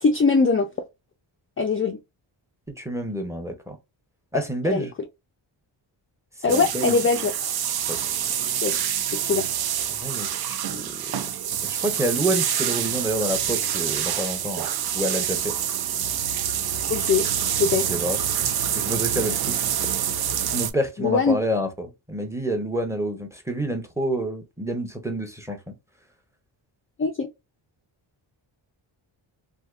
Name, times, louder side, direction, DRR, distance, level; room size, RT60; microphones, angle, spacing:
voice 1, 0.0-0.7 1.6-2.0 4.7-4.9 6.4-7.3 8.6-8.8 9.1-9.5 16.9-17.2 17.6-17.9 21.0-21.4 27.0-27.3, left 4 dB, 30° left, 0.4 m, -21 dB
voice 2, 2.8-3.8 4.3-4.9 6.5-7.0 7.9-8.0 9.9-10.3 10.7-11.1 11.6-14.7 14.9-15.6 17.9-18.2 18.7-19.6 20.5-25.7, right 1 dB, 5° right, 0.8 m, -28 dB
sound 1, 6.5-20.7, right 9 dB, 50° right, 0.5 m, -26 dB
3.4 x 2.7 x 2.4 m
wide cardioid pair, 110°, 48 cm